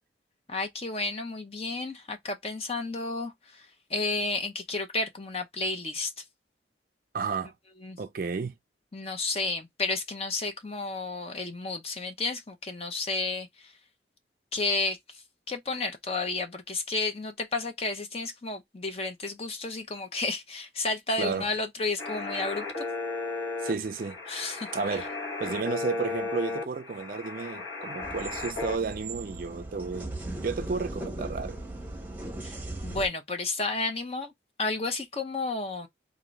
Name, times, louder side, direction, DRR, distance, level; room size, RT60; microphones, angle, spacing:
voice 1, 0.5-6.1 7.8-8.0 8.9-13.7 14.5-15.2 15.5-22.9 24.3-24.7 32.4-32.6 32.8-34.3 34.6-35.9, left 3 dB, 35° left, 0.7 m, -32 dB
voice 2, 7.1-7.5 8.0-8.5 21.2-21.5 23.6-24.2 24.7-25.1 25.4-30.1 30.4-31.6, right 5 dB, 50° right, 0.4 m, -32 dB
sound 1, 22.0-28.8, left 3 dB, 65° left, 1.2 m, -35 dB
sound 2, 28.0-33.1, right 1 dB, 10° right, 1.0 m, -38 dB
3.7 x 2.6 x 3.1 m
head